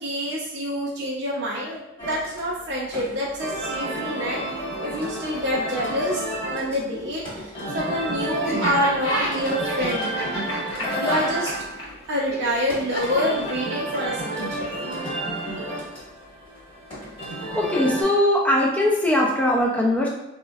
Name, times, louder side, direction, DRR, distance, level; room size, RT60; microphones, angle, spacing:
voice 1, 0.0-4.4 4.8-6.2 6.5-10.6 11.0-11.5 12.1-14.7, equal, 55° right, -6 dB, 0.5 m, -27 dB
sound 1, 2.0-18.0, right 1 dB, 25° left, 1.1 m, -31 dB
Laughter, 8.4-14.2, equal, 65° left, 0.8 m, -31 dB
voice 2, 17.5-20.1, left 1 dB, 5° left, -2 dB, 0.4 m, -20 dB
3.6 x 2.1 x 2.2 m, 0.91 s
head